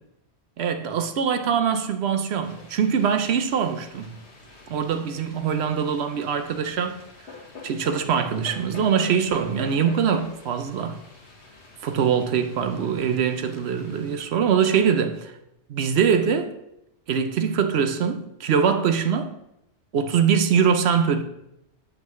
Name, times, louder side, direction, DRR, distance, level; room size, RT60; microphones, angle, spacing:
voice 1, 0.6-4.1 4.7-7.0 7.6-11.0 11.8-15.3 15.7-16.5 17.1-19.3 19.9-21.2, right 7 dB, 70° right, 0.9 m, -23 dB
sound 1, 2.4-14.3, left 3 dB, 70° left, 1.6 m, -46 dB
7.5 x 7.0 x 3.1 m
omnidirectional pair, 1.2 m